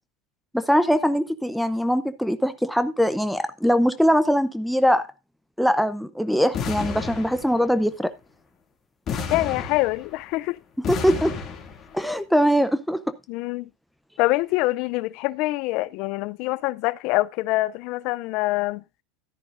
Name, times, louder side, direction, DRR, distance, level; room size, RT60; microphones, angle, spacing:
voice 1, 0.5-5.0 5.6-8.1 10.9-11.3 11.9-13.0, equal, ahead, 0.7 m, -22 dB
sound 1, 6.5-7.8 9.1-10.3 10.8-12.0, left 6 dB, 30° left, 2.5 m, -31 dB
voice 2, 9.3-10.6 13.3-13.7 14.2-18.8, left 19 dB, 50° left, 0.5 m, -25 dB
13.0 x 10.0 x 2.6 m
supercardioid pair, 140°, 0 cm